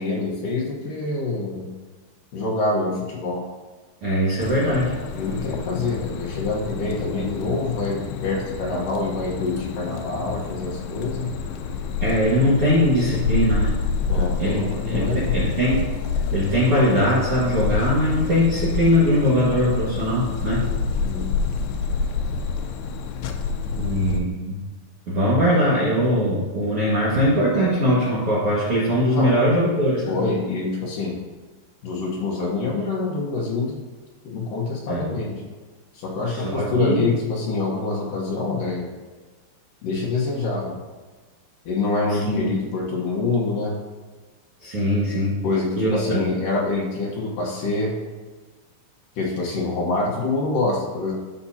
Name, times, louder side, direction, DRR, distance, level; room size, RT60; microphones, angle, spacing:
voice 1, 0.0-1.7 2.3-3.4 5.2-11.3 14.1-15.4 21.0-21.2 23.7-24.3 29.1-29.3 30.1-31.2 31.8-33.8 34.2-35.4 35.9-38.9 39.8-40.8 41.7-43.8 45.4-47.9 49.2-51.1, left 3 dB, 70° left, -3 dB, 2.1 m, -26 dB
voice 2, 4.0-4.9 12.0-13.8 14.4-14.6 14.9-15.9 16.3-20.6 23.7-24.6 25.1-30.1 34.9-35.0 36.3-37.0 42.1-42.5 44.6-45.4 45.8-46.2, equal, 65° right, -8 dB, 1.4 m, -21 dB
sound 1, 4.4-24.2, left 5 dB, 90° left, 2.2 m, -28 dB
14.0 x 6.1 x 2.8 m, 1.3 s
omnidirectional pair, 5.4 m